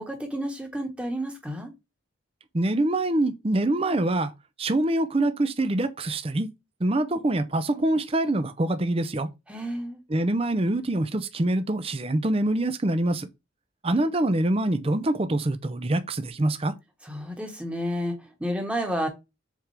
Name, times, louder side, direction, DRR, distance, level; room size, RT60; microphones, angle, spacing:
voice 1, 0.0-1.7 9.5-10.0 17.0-19.1, equal, 5° right, 1.4 m, -31 dB
voice 2, 2.5-4.3 4.6-6.5 6.8-9.3 10.1-13.3 13.8-16.7, right 1 dB, 25° right, 0.6 m, -25 dB
7.4 x 3.7 x 3.4 m
head